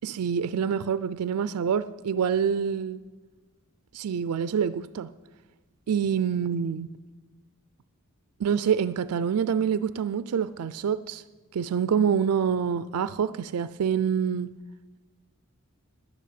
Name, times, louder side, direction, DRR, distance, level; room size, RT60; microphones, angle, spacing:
voice 1, 0.0-3.0 3.9-5.1 5.9-6.9 8.4-11.2 11.5-14.5, right 7 dB, 80° right, 0.4 m, -26 dB
10.5 x 9.2 x 8.5 m
head